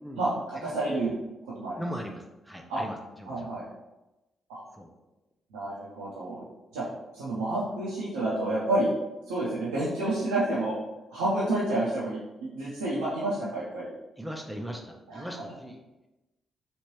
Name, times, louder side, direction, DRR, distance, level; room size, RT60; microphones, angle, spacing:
voice 1, 0.2-1.1 1.6-1.8 2.7-2.8 3.3-3.6 4.5-4.6 5.5-6.4 6.7-6.8 7.1-8.9 9.3-10.8 11.1-13.9 15.1-15.3, right 2 dB, 90° right, -9 dB, 0.6 m, -29 dB
voice 2, 1.8-3.5 4.7-4.9 14.2-15.8, equal, 5° right, 2 dB, 0.5 m, -39 dB
3.1 x 2.5 x 3.0 m, 1.0 s
hypercardioid pair, 45°, 0 cm